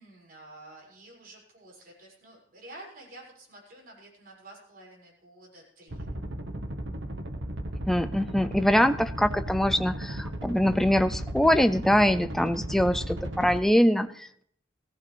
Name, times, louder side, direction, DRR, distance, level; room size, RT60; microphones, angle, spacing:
voice 1, 0.0-6.1, right 1 dB, 50° right, -3 dB, 6.3 m, -50 dB
sound 1, 5.9-13.6, right 1 dB, 80° right, 1.4 m, -35 dB
voice 2, 7.9-14.4, equal, ahead, 9 dB, 0.4 m, -23 dB
17.5 x 15.0 x 3.4 m, 0.66 s
head